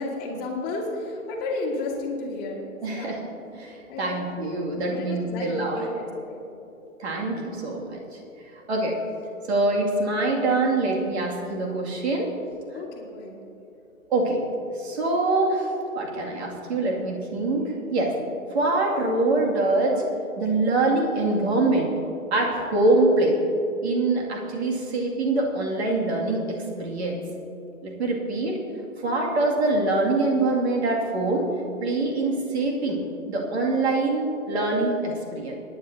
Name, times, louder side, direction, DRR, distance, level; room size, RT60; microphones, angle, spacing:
voice 1, 0.0-3.2 3.9-4.3 4.8-6.5 12.7-13.4, left 2 dB, 20° left, -2 dB, 1.9 m, -32 dB
voice 2, 2.8-3.1 3.5-5.8 7.0-8.0 8.7-9.0 9.5-12.3 14.1-14.4 14.8-15.7 16.0-18.1 18.5-20.0 20.4-21.9 22.3-23.4 23.8-27.2 27.8-28.6 29.0-31.5 31.8-33.0 33.3-35.6, right 2 dB, 50° right, -1 dB, 2.4 m, -24 dB
22.5 x 9.9 x 2.7 m, 2.9 s
figure-of-eight pair, 130°, 42 cm